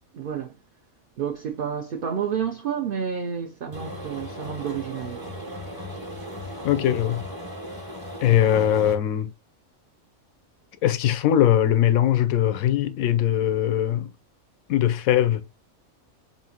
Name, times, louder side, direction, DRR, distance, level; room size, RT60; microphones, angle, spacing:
voice 1, 0.1-0.6 1.2-5.3 8.5-8.7, right 7 dB, 55° right, 0.6 m, -30 dB
sound 1, 3.7-9.0, equal, 20° right, 0.7 m, -37 dB
voice 2, 6.6-7.2 8.2-9.3 10.8-14.1 14.7-15.4, left 11 dB, 85° left, 1.0 m, -21 dB
5.6 x 2.6 x 2.8 m
omnidirectional pair, 1.4 m